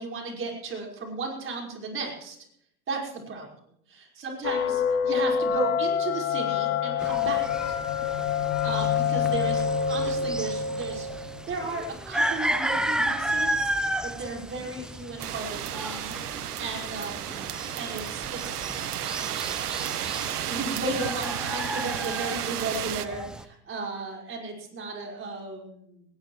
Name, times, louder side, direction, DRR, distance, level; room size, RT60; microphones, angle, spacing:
voice 1, 0.0-2.4 2.9-3.5 3.9-7.8 8.6-13.7 14.0-17.5 17.8-19.7 20.3-26.0, right 3 dB, 25° right, 0 dB, 5.2 m, -35 dB
sound 1, 4.4-11.8, left 7 dB, 60° left, 1.8 m, -27 dB
sound 2, 7.0-23.4, right 1 dB, ahead, 0.6 m, -33 dB
sound 3, 15.2-23.1, right 11 dB, 85° right, 1.0 m, -33 dB
19.5 x 18.5 x 3.2 m, 0.72 s
hypercardioid pair, 110°, 45 cm